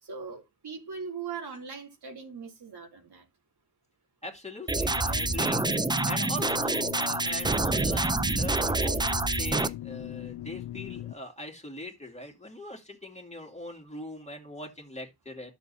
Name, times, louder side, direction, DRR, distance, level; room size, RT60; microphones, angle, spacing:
voice 1, 0.0-3.2, right 5 dB, 75° right, 3.0 m, -40 dB
voice 2, 4.2-5.6 6.1-15.5, left 1 dB, 15° left, 2.4 m, -41 dB
sound 1, 4.7-9.7, right 3 dB, 10° right, 0.5 m, -27 dB
sound 2, 4.8-11.1, left 13 dB, 90° left, 0.6 m, -39 dB
12.0 x 7.0 x 2.7 m
cardioid pair, 80°, 40 cm